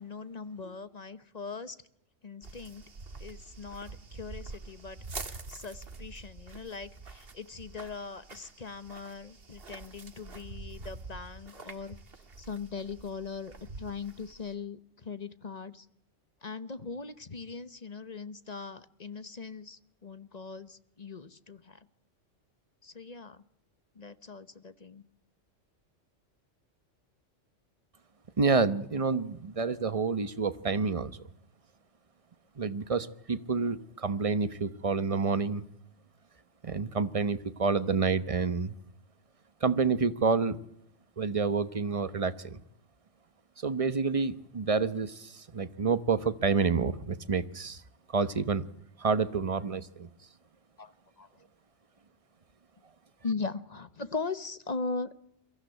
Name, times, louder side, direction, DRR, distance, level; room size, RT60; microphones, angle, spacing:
voice 1, 0.0-1.8 2.2-2.8 3.2-5.0 5.2-12.0 12.4-15.9 16.4-21.8 22.8-23.4 24.0-25.0 50.8-50.9 51.2-51.3 53.2-55.2, left 4 dB, 35° left, 14 dB, 1.0 m, -40 dB
sound 1, 2.4-14.5, right 3 dB, 50° right, 1.7 m, -46 dB
voice 2, 28.4-31.2 32.6-35.6 36.6-38.7 39.6-40.6 41.2-42.6 43.6-47.8 48.1-48.7 49.0-50.1, right 4 dB, 30° right, 14 dB, 1.0 m, -28 dB
23.0 x 15.0 x 9.1 m, 0.76 s
omnidirectional pair, 1.3 m